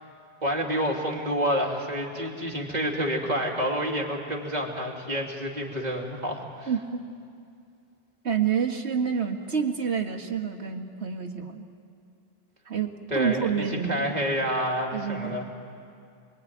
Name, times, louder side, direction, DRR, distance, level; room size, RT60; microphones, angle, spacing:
voice 1, 0.4-6.7 13.1-15.5, equal, 40° right, 0 dB, 3.1 m, -28 dB
voice 2, 6.7-7.0 8.2-11.7 12.7-14.1 14.9-15.4, right 7 dB, 85° right, 2 dB, 2.0 m, -28 dB
28.0 x 22.5 x 9.3 m, 2.4 s
omnidirectional pair, 1.1 m